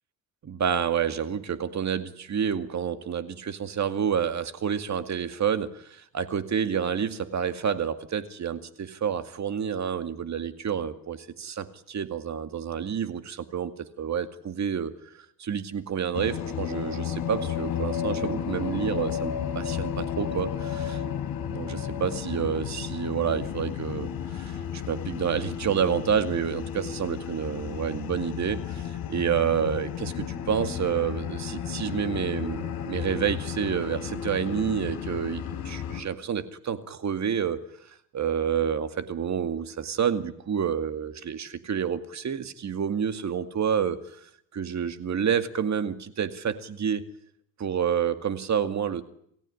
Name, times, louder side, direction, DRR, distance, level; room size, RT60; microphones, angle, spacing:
voice 1, 0.4-13.7 14.0-14.9 15.4-20.5 21.5-37.6 38.1-44.0 44.5-47.0 47.6-49.0, right 8 dB, 45° right, 10 dB, 2.2 m, -29 dB
sound 1, 16.1-36.0, left 9 dB, 70° left, 4.0 m, -33 dB
28.5 x 15.5 x 9.9 m, 0.71 s
cardioid pair, 90°, 38 cm